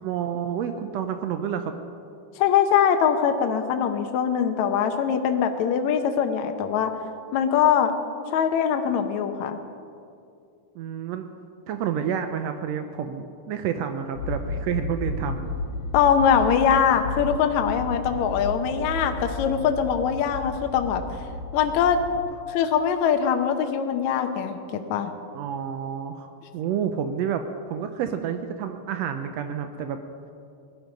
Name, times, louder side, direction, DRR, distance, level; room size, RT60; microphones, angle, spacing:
voice 1, 0.0-1.7 10.8-11.3 11.7-15.5 25.3-30.0, right 8 dB, 90° right, 7 dB, 1.4 m, -29 dB
voice 2, 2.4-6.9 7.3-7.9 8.3-9.6 15.9-21.0 21.5-22.0 22.5-25.1, left 8 dB, 70° left, 6 dB, 1.9 m, -22 dB
sound 1, 14.2-22.2, left 2 dB, 90° left, 2.5 m, -33 dB
20.0 x 12.0 x 5.3 m, 2.5 s
omnidirectional pair, 3.8 m